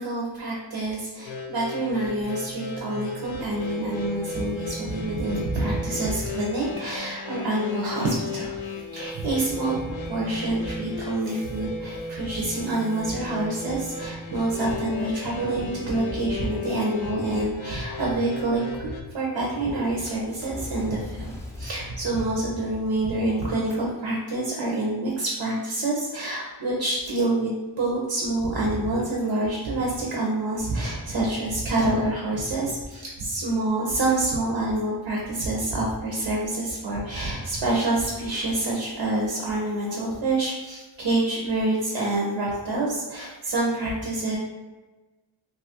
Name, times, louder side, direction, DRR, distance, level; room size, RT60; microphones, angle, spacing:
voice 1, 0.0-8.6 8.9-21.2 21.6-44.4, right 2 dB, 65° right, -3 dB, 0.7 m, -27 dB
sound 1, 1.2-19.0, left 3 dB, 75° left, 0.5 m, -35 dB
Fire, 19.3-23.9, left 1 dB, 5° left, 0.4 m, -40 dB
2.7 x 2.4 x 2.8 m, 1.2 s
cardioid pair, 55°, 48 cm